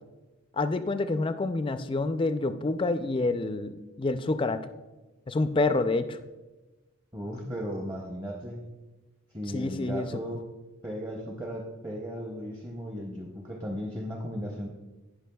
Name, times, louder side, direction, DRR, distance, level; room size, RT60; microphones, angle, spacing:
voice 1, 0.6-4.6 5.3-6.2 9.5-10.1, left 2 dB, 25° left, 10 dB, 0.3 m, -27 dB
voice 2, 7.1-8.6 9.3-10.4 10.8-14.7, equal, 15° right, -1 dB, 0.7 m, -36 dB
17.5 x 5.9 x 2.3 m, 1.1 s
head